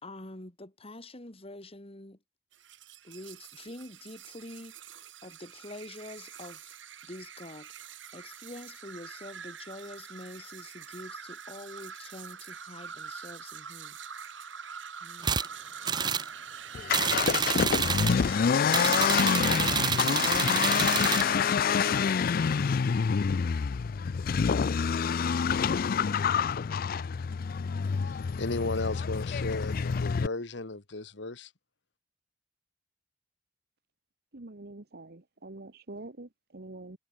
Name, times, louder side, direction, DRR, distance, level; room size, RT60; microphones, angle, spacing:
voice 1, 0.0-2.2 3.0-6.8 7.0-14.0 15.0-15.4, left 1 dB, 30° left, 2.8 m, -46 dB
sound 1, 2.5-22.0, right 7 dB, 90° right, 4.8 m, -44 dB
sound 2, 15.2-15.5 15.8-16.3 16.9-18.2 18.7-21.3, right 6 dB, 25° right, 0.6 m, -28 dB
Accelerating revving vroom, 16.7-30.3, left 6 dB, 50° left, 0.4 m, -27 dB
voice 2, 27.9-31.5, left 2 dB, 65° left, 1.6 m, -35 dB
voice 3, 34.3-37.0, right 2 dB, 55° right, 1.3 m, -45 dB
head